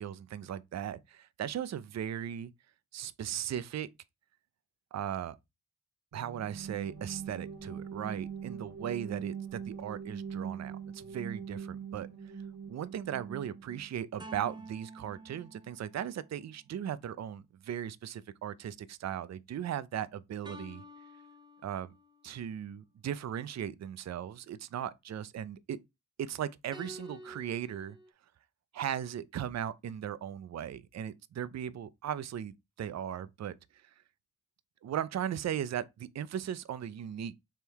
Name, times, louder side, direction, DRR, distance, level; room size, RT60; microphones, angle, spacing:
voice 1, 0.0-2.5 2.9-3.9 4.9-5.4 6.1-12.1 12.7-20.8 21.6-21.9 22.2-25.8 26.2-28.0 28.7-33.5 34.8-37.3, right 9 dB, 45° right, 0.5 m, -37 dB
sound 1, 6.1-13.9, right 7 dB, 80° right, 1.5 m, -42 dB
sound 2, 14.2-16.7 20.4-22.3 26.7-28.1, right 1 dB, 10° right, 0.9 m, -49 dB
3.5 x 3.3 x 4.5 m
cardioid pair, 50°, 38 cm